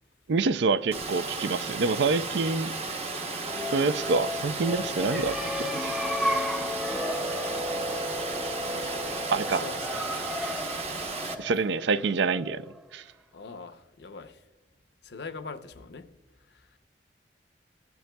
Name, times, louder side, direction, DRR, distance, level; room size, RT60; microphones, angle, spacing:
voice 1, 0.3-2.7 3.7-6.0 9.3-9.7 11.4-12.7 12.9-13.0, right 4 dB, 70° right, 0.4 m, -27 dB
Water, 0.9-11.3, right 3 dB, 35° right, 0.8 m, -34 dB
sound 1, 3.3-12.8, left 1 dB, ahead, 0.4 m, -33 dB
voice 2, 8.7-10.4 13.3-14.4 15.0-16.1, left 4 dB, 65° left, 0.6 m, -43 dB
16.0 x 10.5 x 2.2 m
head